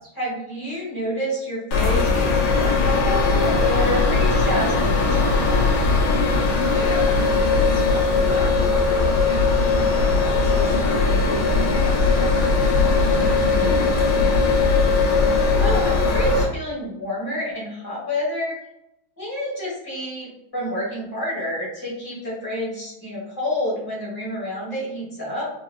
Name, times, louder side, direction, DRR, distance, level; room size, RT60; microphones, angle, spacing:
voice 1, 0.1-5.6 13.4-13.7 15.3-18.5 19.2-25.5, equal, 15° left, -7 dB, 0.9 m, -29 dB
sound 1, 1.7-16.4, left 3 dB, 90° left, 1.4 m, -19 dB
voice 2, 6.6-14.3, equal, 75° left, -6 dB, 0.7 m, -35 dB
3.8 x 2.1 x 2.2 m, 0.85 s
omnidirectional pair, 2.1 m